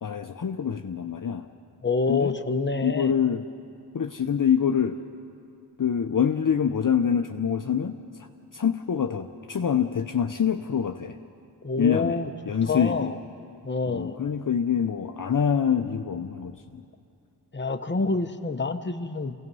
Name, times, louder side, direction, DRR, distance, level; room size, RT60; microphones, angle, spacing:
voice 1, 0.0-1.5 2.1-2.3 2.8-3.4 3.9-5.0 5.8-11.2 11.8-12.2 12.5-13.1 13.9-16.8, left 7 dB, 50° left, 6 dB, 0.7 m, -25 dB
voice 2, 1.8-3.1 11.6-12.3 12.7-13.1 13.6-14.2 17.5-19.3, left 4 dB, 25° left, 7 dB, 0.9 m, -27 dB
28.0 x 17.0 x 5.5 m, 2.4 s
wide cardioid pair, 65°, 42 cm